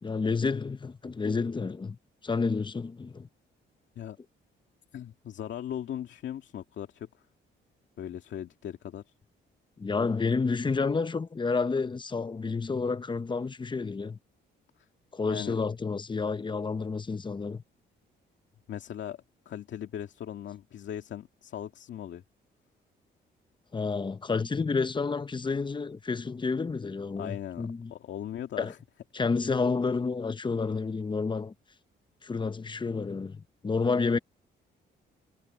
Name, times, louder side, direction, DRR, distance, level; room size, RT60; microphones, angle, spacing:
voice 1, 0.0-2.0 2.2-3.3 9.8-14.2 15.1-17.6 23.7-27.9 28.6-28.7 29.1-31.5 32.2-34.2, left 4 dB, 25° left, 0.9 m, -30 dB
voice 2, 4.9-7.1 8.0-9.1 14.8-14.9 15.3-15.6 18.7-22.2 27.2-28.8, left 10 dB, 65° left, 2.3 m, -39 dB
cardioid pair, 90°, 20 cm